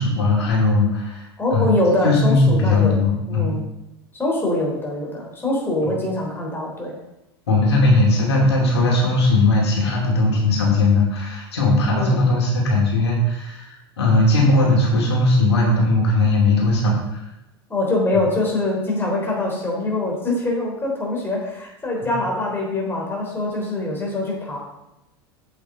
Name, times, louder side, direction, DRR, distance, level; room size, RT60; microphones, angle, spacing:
voice 1, 0.0-1.7 2.0-3.5 7.5-17.2 22.0-22.1, left 2 dB, 75° left, -2 dB, 2.5 m, -18 dB
voice 2, 1.4-3.0 3.3-3.6 4.1-7.0 11.9-12.2 17.7-24.6, left 2 dB, 15° left, -2 dB, 3.4 m, -23 dB
8.0 x 7.9 x 3.7 m, 0.91 s
hypercardioid pair, 85°, 14 cm